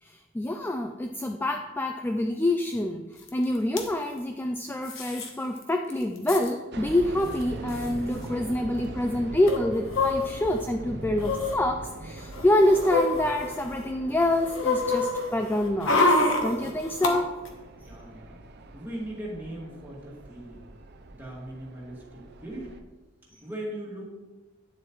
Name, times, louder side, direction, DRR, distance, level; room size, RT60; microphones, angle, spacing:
voice 1, 0.0-16.1 16.4-17.4 23.3-23.4, left 1 dB, 10° left, 5 dB, 0.3 m, -26 dB
sound 1, 3.3-3.4 3.6-3.9 4.8-5.3 5.6-5.7 5.9-6.5 7.4-7.5 7.7-7.9 9.5-10.6 11.2-11.6 12.2-13.8 14.2-17.1 17.5-17.6, left 3 dB, 75° left, 1.1 m, -27 dB
sound 2, 6.7-22.8, right 2 dB, 55° right, 0.6 m, -42 dB
voice 2, 17.8-18.4 18.7-20.6 21.1-22.7 23.4-24.0, right 1 dB, 10° right, -5 dB, 2.2 m, -39 dB
9.3 x 7.4 x 3.1 m, 1.2 s
head